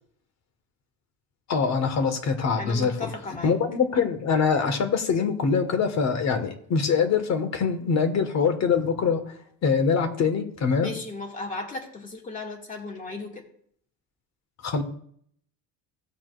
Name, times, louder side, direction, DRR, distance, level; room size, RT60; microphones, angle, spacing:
voice 1, 1.5-9.2 9.6-10.9 14.6-14.8, left 5 dB, 45° left, 6 dB, 1.7 m, -24 dB
voice 2, 2.6-3.5 10.8-13.4, left 3 dB, 20° left, 0 dB, 2.4 m, -36 dB
17.5 x 7.4 x 2.6 m, 0.63 s
cardioid pair, 145°, 38 cm